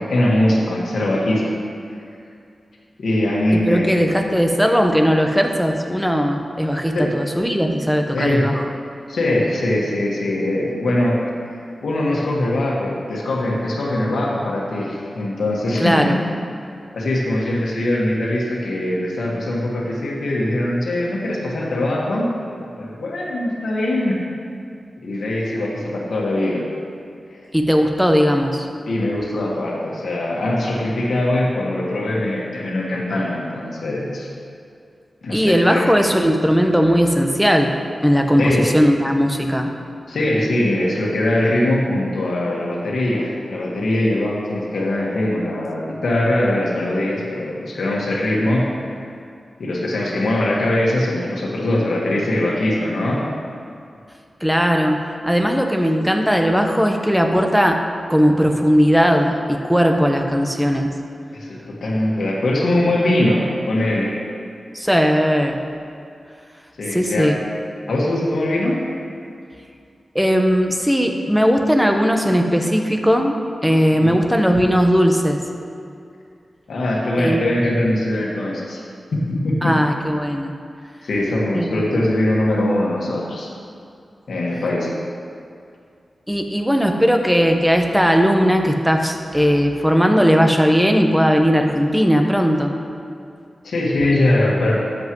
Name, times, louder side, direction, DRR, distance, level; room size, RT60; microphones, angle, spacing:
voice 1, 0.0-1.4 3.0-4.1 6.9-7.2 8.1-8.5 9.1-11.2 11.8-16.1 16.9-22.3 22.6-24.2 25.0-26.6 27.3-27.4 28.8-34.3 35.2-35.9 38.4-38.7 40.1-49.1 49.6-53.3 61.3-64.2 66.8-67.3 67.9-68.8 74.0-74.1 76.7-78.8 79.1-79.7 81.0-83.5 84.3-84.9 93.6-94.8, left 1 dB, 85° left, -3 dB, 1.8 m, -21 dB
voice 2, 3.5-8.6 15.8-16.2 27.5-28.7 35.3-37.7 38.0-39.7 54.4-57.8 58.1-60.9 64.7-65.6 66.9-67.3 70.1-73.3 73.6-75.4 77.2-77.4 79.6-80.5 81.5-82.0 86.3-92.7, equal, 5° right, 3 dB, 1.2 m, -18 dB
12.5 x 7.9 x 3.2 m, 2.4 s
cardioid pair, 45°, 0 cm